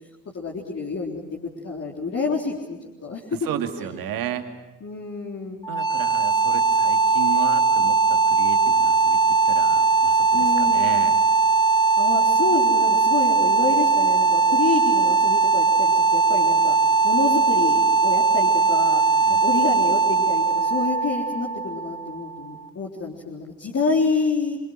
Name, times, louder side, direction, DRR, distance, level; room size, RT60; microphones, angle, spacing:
voice 1, 0.3-3.2 4.8-5.6 10.3-10.9 12.0-16.7 17.0-19.0 19.4-24.6, left 4 dB, 40° left, -1 dB, 3.9 m, -28 dB
voice 2, 3.3-4.5 5.7-11.2 19.2-19.4, right 10 dB, 60° right, 6 dB, 2.4 m, -33 dB
sound 1, 5.6-22.6, right 4 dB, 10° left, 1.7 m, -19 dB
27.5 x 26.5 x 6.2 m, 1.1 s
figure-of-eight pair, 45°, 39 cm